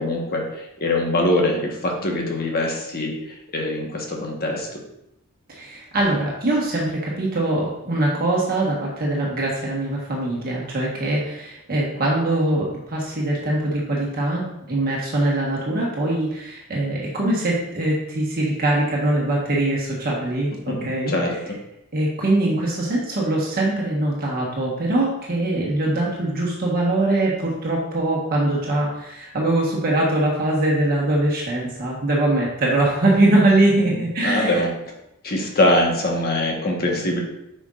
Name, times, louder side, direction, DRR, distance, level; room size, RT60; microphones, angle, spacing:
voice 1, 0.0-4.7 20.7-20.8 21.1-21.3 33.9-34.7 35.2-37.2, left 1 dB, 45° left, 0 dB, 1.3 m, -23 dB
voice 2, 5.5-21.1 21.9-34.6, right 1 dB, 45° right, -3 dB, 1.3 m, -22 dB
7.9 x 5.2 x 2.5 m, 0.84 s
head